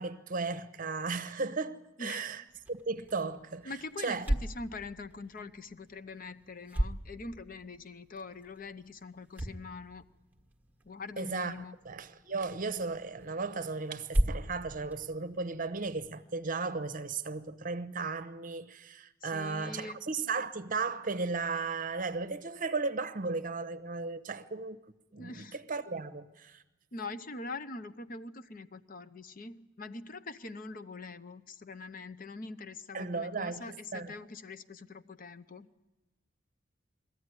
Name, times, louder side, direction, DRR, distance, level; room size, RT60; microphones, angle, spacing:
voice 1, 0.0-2.4 2.7-3.7 4.0-4.3 11.2-11.5 11.8-24.8 25.1-26.6 32.9-34.1, right 4 dB, 45° right, 0.9 m, -35 dB
voice 2, 2.0-2.4 3.6-10.0 10.8-11.8 19.2-20.0 25.2-25.6 26.9-35.7, left 3 dB, 45° left, 0.8 m, -43 dB
sound 1, 2.5-16.1, right 1 dB, 10° right, 1.4 m, -38 dB
22.0 x 14.0 x 9.7 m
head